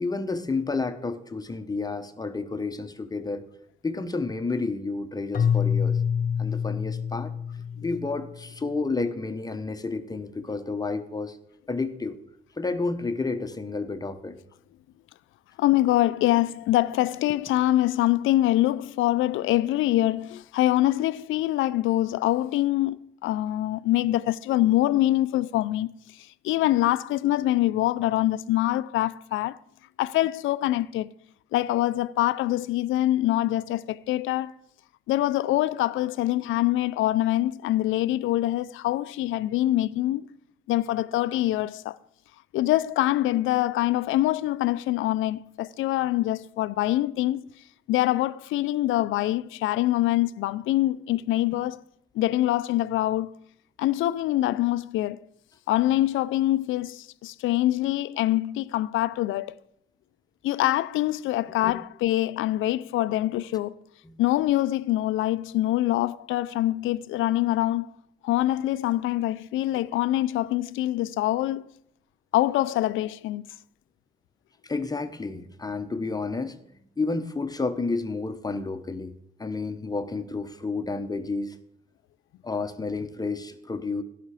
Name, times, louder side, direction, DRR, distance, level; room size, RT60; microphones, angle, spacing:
voice 1, 0.0-3.4 3.8-6.0 6.4-11.4 11.7-12.2 12.6-14.4 61.6-61.8 64.0-64.2 74.6-79.1 79.4-81.6 82.4-84.0, left 3 dB, 20° left, 0.9 m, -31 dB
Keyboard (musical), 5.3-8.5, left 7 dB, 45° left, 0.7 m, -26 dB
voice 2, 15.6-29.6 30.0-31.1 31.5-34.5 35.1-40.3 40.7-42.0 42.5-47.5 47.9-51.8 52.1-53.3 53.8-55.2 55.7-59.6 60.4-63.7 64.2-67.9 68.2-71.7 72.3-73.4, left 15 dB, 85° left, 0.5 m, -24 dB
17.0 x 5.8 x 4.9 m
cardioid pair, 90°, 20 cm